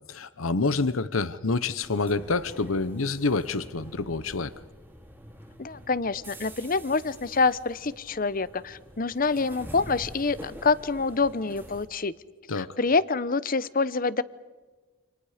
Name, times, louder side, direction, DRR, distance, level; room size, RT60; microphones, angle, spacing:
voice 1, 0.1-4.5 12.5-12.8, left 3 dB, 90° left, 14 dB, 1.0 m, -27 dB
sound 1, 1.8-11.9, equal, 10° right, 2.4 m, -46 dB
voice 2, 5.6-12.1 12.5-14.2, left 4 dB, 45° left, 16 dB, 0.8 m, -26 dB
29.5 x 28.0 x 5.1 m, 1.3 s
head